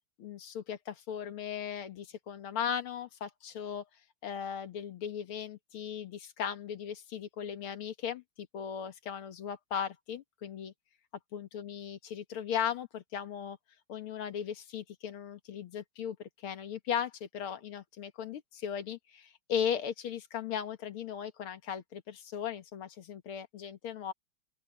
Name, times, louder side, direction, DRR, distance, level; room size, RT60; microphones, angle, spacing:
voice 1, 0.2-3.8 4.2-10.7 11.3-13.6 13.9-24.1, left 8 dB, 75° left, 2.3 m, -37 dB
open air
omnidirectional pair, 2.4 m